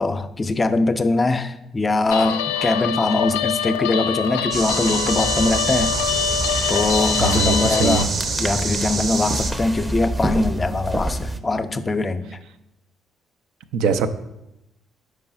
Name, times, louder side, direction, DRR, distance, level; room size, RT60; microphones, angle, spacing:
voice 1, 0.0-6.0 6.7-8.1 8.4-12.4, left 2 dB, 30° left, 11 dB, 0.5 m, -22 dB
Guitar, 2.1-8.0, left 8 dB, 85° left, 0.3 m, -25 dB
sound 1, 4.5-9.5, right 3 dB, 55° right, 0.8 m, -26 dB
sound 2, 5.1-11.4, right 1 dB, 20° right, 0.6 m, -28 dB
voice 2, 7.2-8.1 13.7-14.1, right 6 dB, 70° right, 10 dB, 0.4 m, -22 dB
5.3 x 4.7 x 5.7 m, 0.91 s
hypercardioid pair, 50°, 0 cm